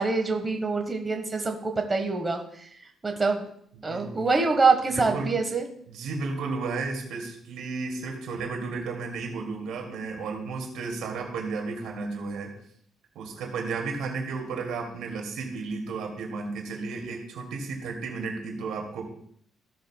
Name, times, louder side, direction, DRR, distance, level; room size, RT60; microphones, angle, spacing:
voice 1, 0.0-3.5 3.8-5.6, right 4 dB, 25° right, 4 dB, 1.3 m, -25 dB
voice 2, 3.8-4.3 4.9-5.3 5.9-12.5 13.1-19.1, right 4 dB, 85° right, 1 dB, 2.3 m, -33 dB
16.0 x 6.6 x 2.2 m, 0.65 s
cardioid pair, 90°, 0 cm